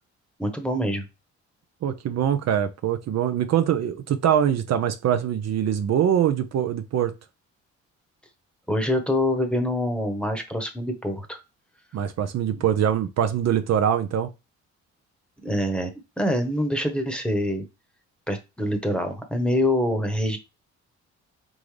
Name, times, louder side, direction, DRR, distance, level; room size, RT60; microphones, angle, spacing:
voice 1, 0.4-1.0 8.7-11.4 15.4-15.9 16.2-17.7 18.3-20.4, left 1 dB, 5° left, 1.0 m, -25 dB
voice 2, 1.8-7.1 11.9-14.3, right 9 dB, 60° right, 0.6 m, -23 dB
3.8 x 3.7 x 3.2 m
cardioid pair, 90°, 30 cm